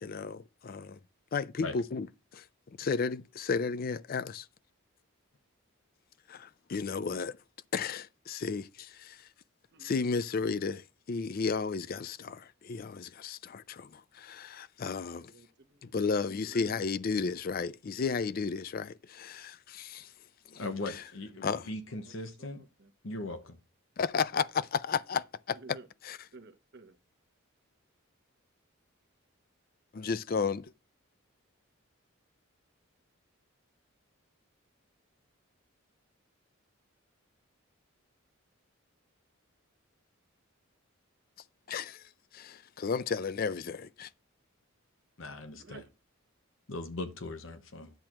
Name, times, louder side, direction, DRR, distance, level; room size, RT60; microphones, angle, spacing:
voice 1, 0.0-1.0 1.3-2.1 2.3-2.5 2.8-4.5 6.3-7.4 7.7-9.3 9.8-15.3 15.8-20.1 20.5-21.0 21.4-21.7 24.0-25.6 26.0-26.2 29.9-30.7 41.7-44.1, left 5 dB, 45° left, 0.4 m, -33 dB
voice 2, 15.3-16.7 21.1-21.7 22.0-22.9 25.5-25.9 26.3-27.0 45.6-45.9, right 3 dB, 50° right, 0.9 m, -54 dB
voice 3, 20.6-22.7 23.0-23.6 45.2-45.8 46.7-47.9, left 2 dB, 65° left, 0.9 m, -39 dB
10.5 x 7.5 x 3.0 m
head